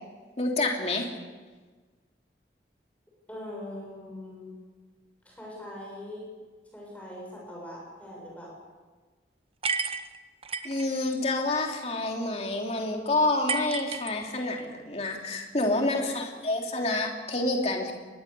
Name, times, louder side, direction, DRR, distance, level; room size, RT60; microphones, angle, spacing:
voice 1, 0.4-1.1 10.6-17.9, left 2 dB, 35° left, 1 dB, 3.2 m, -28 dB
voice 2, 3.3-4.6 5.3-6.3 6.7-8.6, left 1 dB, 10° left, -3 dB, 7.0 m, -41 dB
sound 1, 9.6-10.9 13.5-14.6, right 5 dB, 35° right, 0.9 m, -31 dB
23.0 x 20.0 x 7.0 m, 1.4 s
head